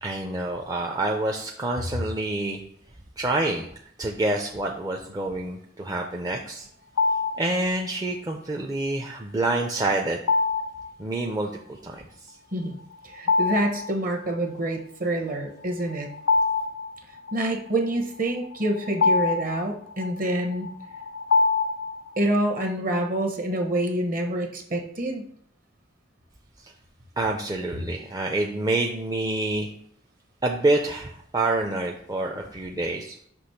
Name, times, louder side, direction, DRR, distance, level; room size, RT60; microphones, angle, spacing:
voice 1, 0.0-2.6 3.2-3.7 4.0-6.7 7.4-10.2 11.0-12.4 26.6-26.7 27.2-29.7 30.4-33.2, right 2 dB, 20° right, 1 dB, 0.4 m, -27 dB
sound 1, 7.0-7.6 10.3-10.9 13.2-13.9 14.3-14.4 15.8-17.4 18.3-22.2, left 4 dB, 80° left, 0.3 m, -25 dB
voice 2, 13.0-16.1 17.3-20.7 22.2-25.2, right 1 dB, 45° right, 4 dB, 1.0 m, -27 dB
6.0 x 2.9 x 5.7 m, 0.66 s
head